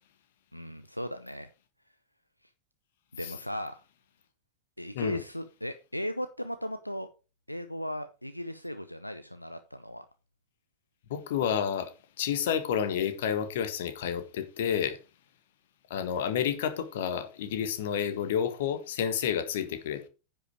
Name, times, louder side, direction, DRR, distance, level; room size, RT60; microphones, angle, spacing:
voice 1, 0.5-1.5 3.1-3.8 4.8-7.1 7.5-10.1, equal, 90° left, 0.6 m, -37 dB
voice 2, 11.1-11.9 12.2-15.0 15.9-20.1, left 8 dB, 55° left, 1.5 m, -30 dB
9.9 x 5.8 x 4.8 m
figure-of-eight pair, 90°, 0 cm